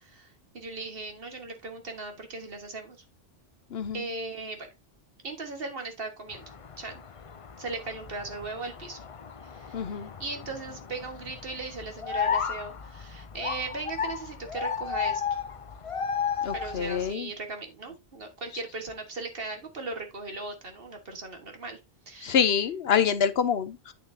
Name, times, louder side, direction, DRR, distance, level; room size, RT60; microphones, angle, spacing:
voice 1, 0.0-3.0 3.9-4.7 5.2-6.4 6.8-7.0 7.6-9.0 9.4-15.2 16.5-21.8 22.1-22.6, right 3 dB, 60° right, 1.7 m, -38 dB
voice 2, 3.7-4.0 9.7-10.1 16.4-17.3 22.2-23.9, left 7 dB, 75° left, 1.0 m, -26 dB
sound 1, 6.3-17.1, left 6 dB, 40° left, 0.6 m, -34 dB
8.9 x 6.4 x 2.7 m
omnidirectional pair, 1.1 m